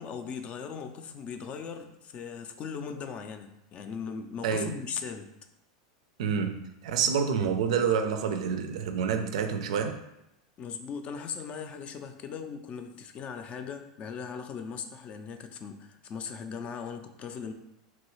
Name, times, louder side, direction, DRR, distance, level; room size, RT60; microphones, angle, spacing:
voice 1, 0.0-5.3 10.6-17.5, left 6 dB, 35° left, 7 dB, 0.3 m, -39 dB
voice 2, 4.4-4.7 6.2-10.0, right 6 dB, 80° right, 6 dB, 0.3 m, -28 dB
3.0 x 2.3 x 3.0 m, 0.85 s
supercardioid pair, 115°, 3 cm